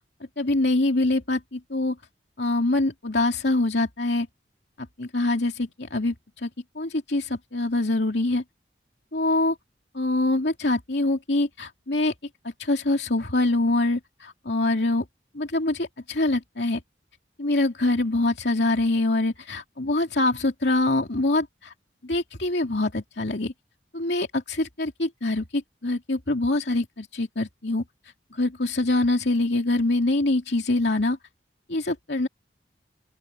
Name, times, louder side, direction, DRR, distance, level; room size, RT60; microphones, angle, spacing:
voice 1, 0.4-2.0 2.4-4.3 4.8-6.5 6.7-8.4 9.1-9.6 9.9-12.1 12.6-15.0 15.3-16.8 17.4-21.7 22.0-23.5 23.9-27.8 28.3-31.2 31.7-32.3, left 2 dB, 75° left, 2.6 m, -24 dB
open air
head